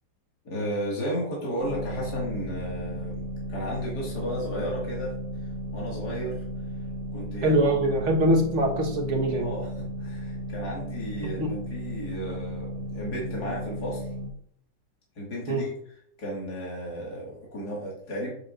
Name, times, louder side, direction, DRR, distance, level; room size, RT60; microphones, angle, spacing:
voice 1, 0.5-5.1 5.7-6.4 7.1-8.0 9.3-14.1 15.2-15.7 16.2-18.3, equal, 65° left, -4 dB, 2.4 m, -34 dB
sound 1, 1.6-14.3, equal, 30° right, 0.9 m, -35 dB
voice 2, 7.4-9.5 11.4-11.5 15.5-15.6, right 1 dB, 45° right, 1 dB, 1.5 m, -23 dB
8.0 x 7.1 x 2.5 m, 0.66 s
omnidirectional pair, 1.9 m